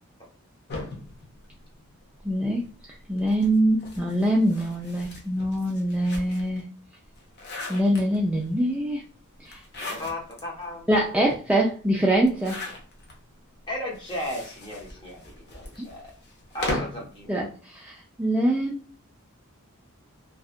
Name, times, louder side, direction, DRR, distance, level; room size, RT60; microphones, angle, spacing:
sound 1, 0.7-2.3 3.2-6.6 7.0-8.5 9.5-10.4 10.9-11.0 11.2-11.3 12.2-13.2 13.9-17.1, left 2 dB, 50° left, 0.7 m, -37 dB
voice 1, 2.2-2.7 3.1-6.7 7.7-9.0 9.4-9.6 10.9-12.6 17.3-18.9, right 1 dB, 5° right, -4 dB, 0.3 m, -24 dB
voice 2, 9.8-10.9 13.7-16.2 16.5-17.3, left 1 dB, 20° left, -2 dB, 0.8 m, -35 dB
2.7 x 2.3 x 2.4 m, 0.37 s
head